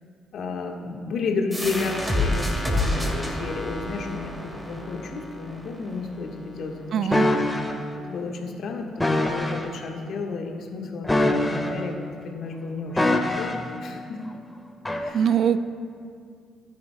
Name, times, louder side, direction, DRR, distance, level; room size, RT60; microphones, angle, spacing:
voice 1, 0.3-7.2 8.0-11.9 12.2-14.2 15.0-15.3, left 4 dB, 60° left, 1 dB, 1.6 m, -32 dB
sound 1, 1.5-6.9, left 1 dB, 15° right, 2.8 m, -29 dB
voice 2, 6.9-7.3 15.1-15.6, right 8 dB, 55° right, 13 dB, 0.5 m, -22 dB
sound 2, 7.1-7.7 9.0-9.7 11.0-11.9 13.0-13.7 14.8-15.1, left 1 dB, 15° left, 1.6 m, -23 dB
18.5 x 10.5 x 2.3 m, 2.2 s
hypercardioid pair, 45°, 0 cm